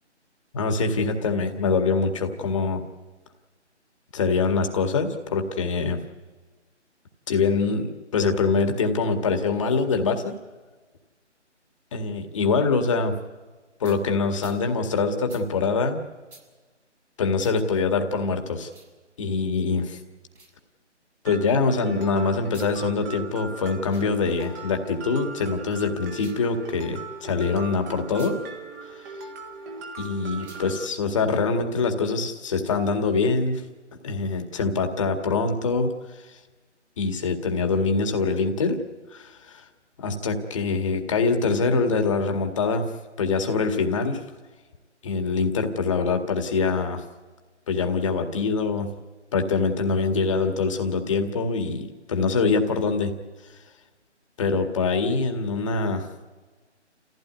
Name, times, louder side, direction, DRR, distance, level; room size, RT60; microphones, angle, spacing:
voice 1, 0.5-2.8 4.1-6.0 7.3-10.3 11.9-13.1 13.8-16.0 17.2-18.7 19.2-20.0 21.2-28.4 30.0-33.6 34.0-35.9 37.0-38.8 39.1-39.6 40.0-42.9 43.2-44.2 45.0-47.0 47.7-48.9 49.3-53.1 54.4-56.1, left 4 dB, 25° left, 5 dB, 2.0 m, -24 dB
sound 1, 13.8-14.0 14.4-14.6 15.3-15.4 16.3-16.5 17.4-17.6 18.6-18.9 20.3-20.5 22.4-22.7 23.8-24.1 26.1-26.5 28.1-28.4 30.4-30.7, right 3 dB, 75° right, 7.3 m, -49 dB
Mallet percussion, 21.3-30.8, right 4 dB, 15° right, 1.6 m, -39 dB
28.5 x 15.5 x 9.6 m, 1.3 s
figure-of-eight pair, 160°, 36 cm